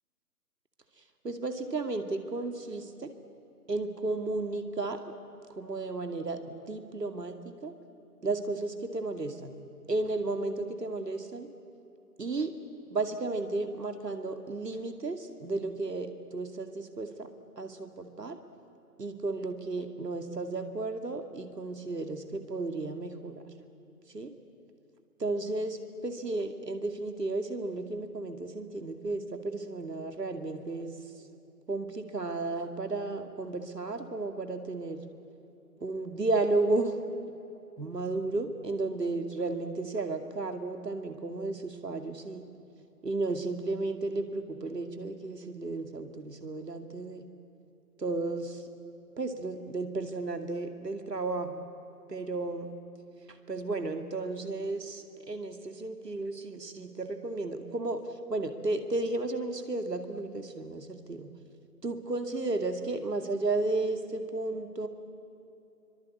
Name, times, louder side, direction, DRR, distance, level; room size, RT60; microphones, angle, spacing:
voice 1, 1.2-3.1 3.7-5.0 5.6-7.7 8.2-9.5 9.9-11.5 12.2-12.5 12.9-17.3 17.6-18.4 19.0-23.4 24.1-24.3 25.2-25.8 26.0-31.0 31.7-35.1 35.8-37.0 37.8-42.4 43.0-47.3 48.0-48.6 49.2-51.6 52.1-52.7 53.5-58.0 58.3-61.3 61.8-64.9, right 2 dB, 90° right, 7 dB, 2.5 m, -33 dB
24.5 x 24.0 x 8.5 m, 2.9 s
figure-of-eight pair, 150°, 47 cm